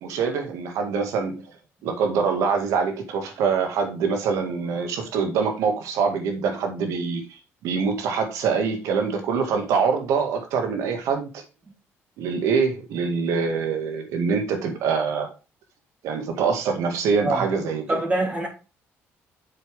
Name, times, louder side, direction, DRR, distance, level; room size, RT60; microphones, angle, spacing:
voice 1, 0.0-1.5 1.8-11.4 12.2-15.3 16.0-17.8, right 5 dB, 85° right, 2.0 m, -24 dB
voice 2, 17.9-18.5, right 1 dB, 25° right, 3.2 m, -24 dB
7.8 x 6.7 x 3.6 m
cardioid pair, 115°, 5 cm